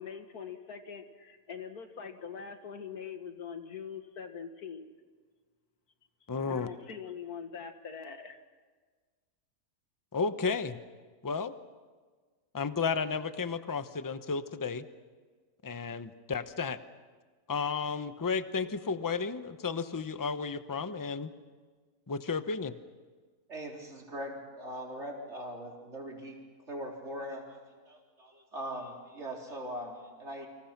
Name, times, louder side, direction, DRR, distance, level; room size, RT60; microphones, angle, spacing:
voice 1, 0.0-4.9 6.5-8.4, left 7 dB, 85° left, 7 dB, 2.2 m, -43 dB
voice 2, 6.3-6.7 10.1-10.8 11.2-11.5 12.5-14.8 15.6-16.8 17.5-21.3 22.1-22.7, left 5 dB, 20° left, 11 dB, 0.7 m, -33 dB
voice 3, 23.5-26.4 26.7-27.6 27.9-30.5, equal, 50° right, -1 dB, 4.4 m, -41 dB
30.0 x 25.0 x 5.9 m, 1.5 s
omnidirectional pair, 1.6 m